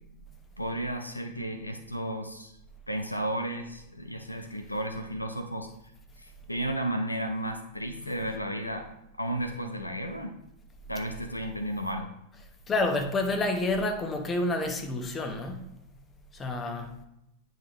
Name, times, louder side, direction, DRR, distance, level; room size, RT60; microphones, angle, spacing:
voice 1, 0.6-2.5 2.9-5.7 6.2-8.9 9.2-10.4 10.9-12.1, right 1 dB, 85° left, 5 dB, 0.6 m, -33 dB
voice 2, 12.7-15.7 16.3-17.0, left 2 dB, 20° left, 3 dB, 1.0 m, -29 dB
9.2 x 4.9 x 3.0 m, 0.84 s
figure-of-eight pair, 90°, 0 cm